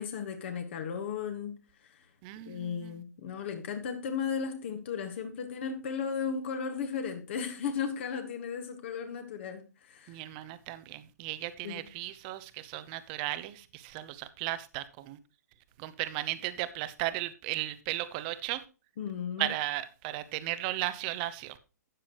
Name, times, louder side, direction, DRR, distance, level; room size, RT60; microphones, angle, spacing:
voice 1, 0.0-2.0 2.5-10.2 11.6-11.8 19.0-19.5, left 6 dB, 45° left, 1.7 m, -35 dB
voice 2, 2.2-3.0 10.1-15.2 15.8-18.6 19.4-21.6, right 16 dB, 30° right, 0.9 m, -35 dB
12.5 x 8.7 x 3.1 m
figure-of-eight pair, 120°, 9 cm